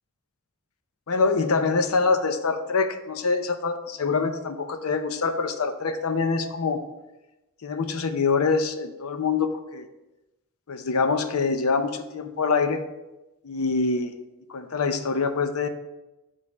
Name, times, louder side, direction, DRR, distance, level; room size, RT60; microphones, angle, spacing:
voice 1, 1.1-6.8 7.6-9.9 10.7-12.8 13.4-14.1 14.5-15.7, left 4 dB, 80° left, 9 dB, 0.6 m, -25 dB
7.0 x 3.6 x 5.3 m, 1.0 s
head